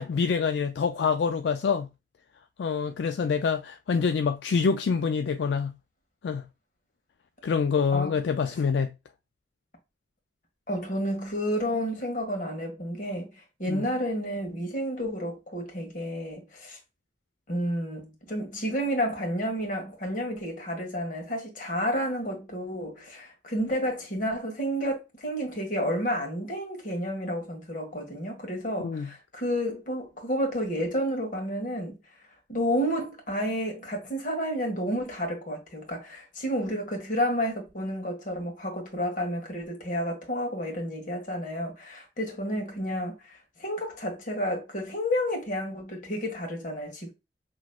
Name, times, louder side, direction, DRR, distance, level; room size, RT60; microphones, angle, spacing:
voice 1, 0.0-1.9 2.6-5.8 6.2-6.5 7.4-8.9 13.7-13.8 28.8-29.1, left 5 dB, 70° left, 0.3 m, -26 dB
voice 2, 10.7-16.8 17.5-32.0 32.5-47.1, equal, 50° left, 1.7 m, -31 dB
6.1 x 3.1 x 2.3 m
head